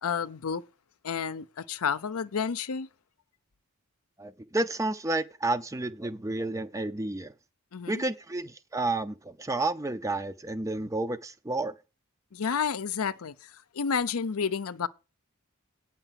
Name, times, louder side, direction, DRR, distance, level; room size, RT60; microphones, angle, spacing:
voice 1, 0.0-0.6 1.0-2.9 7.7-8.0 12.3-14.9, left 6 dB, 75° left, 0.6 m, -30 dB
voice 2, 4.2-7.3 7.9-11.7, right 2 dB, 15° right, 0.5 m, -31 dB
9.0 x 5.7 x 7.4 m
head